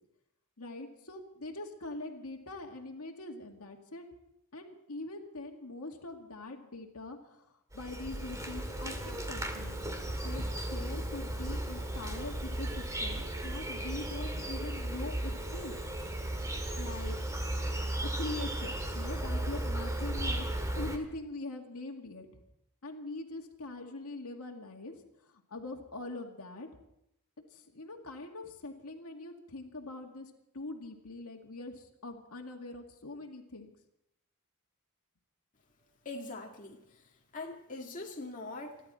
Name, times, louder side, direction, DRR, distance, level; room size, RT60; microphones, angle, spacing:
voice 1, 0.6-4.1 4.5-9.7 10.2-10.5 10.7-15.7 16.8-17.2 18.2-20.5 20.8-22.3 22.8-24.9 25.2-26.7 27.5-33.7, left 2 dB, 80° left, 2 dB, 2.2 m, -43 dB
Insect, 7.7-21.0, right 1 dB, 15° right, 1.9 m, -35 dB
voice 2, 36.1-36.8 37.3-38.8, left 2 dB, 35° left, 0 dB, 2.0 m, -42 dB
28.5 x 11.5 x 4.4 m, 0.79 s
head